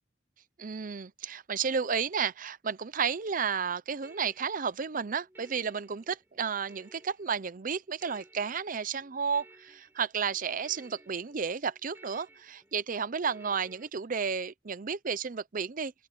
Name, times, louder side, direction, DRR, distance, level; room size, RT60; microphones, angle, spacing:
voice 1, 0.6-15.9, right 6 dB, 50° right, 0.7 m, -32 dB
sound 1, 3.7-13.9, right 1 dB, 15° right, 7.2 m, -58 dB
open air
head